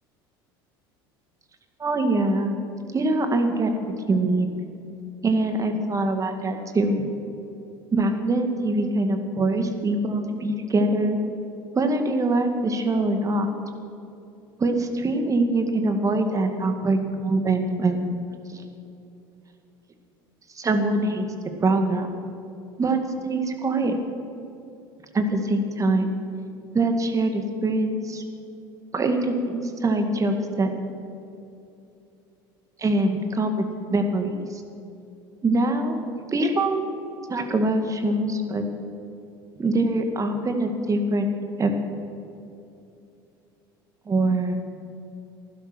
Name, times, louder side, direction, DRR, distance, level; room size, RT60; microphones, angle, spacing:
voice 1, 1.8-2.5 2.9-4.5 5.2-7.1 7.9-11.2 11.7-13.5 14.6-18.1 18.5-18.6 20.6-21.3 21.6-22.1 22.8-24.0 25.1-26.1 26.7-28.2 28.9-30.7 32.8-34.6 35.4-36.8 37.3-38.6 39.6-41.3 41.6-41.7 44.1-44.6, right 2 dB, 25° right, 6 dB, 2.0 m, -23 dB
15.5 x 11.5 x 6.2 m, 2.7 s
hypercardioid pair, 80°, 12 cm